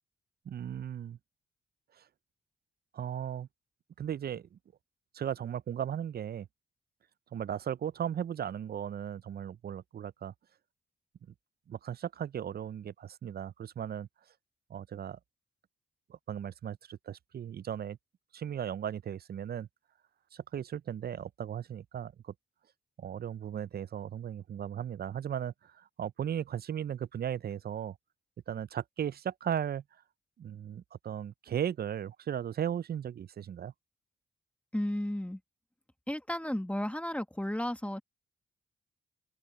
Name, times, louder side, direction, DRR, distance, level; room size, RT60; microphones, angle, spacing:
voice 1, 0.5-1.2 2.0-2.1 2.9-3.5 4.0-4.6 5.1-6.5 7.3-10.3 11.7-14.1 14.7-15.2 16.1-18.0 18.3-19.7 20.3-22.3 23.0-28.0 28.5-29.8 30.4-33.7, right 9 dB, 50° right, 0.5 m, -36 dB
voice 2, 34.7-35.4 36.1-38.0, left 1 dB, 5° left, 2.0 m, -33 dB
open air
supercardioid pair, 55°, 21 cm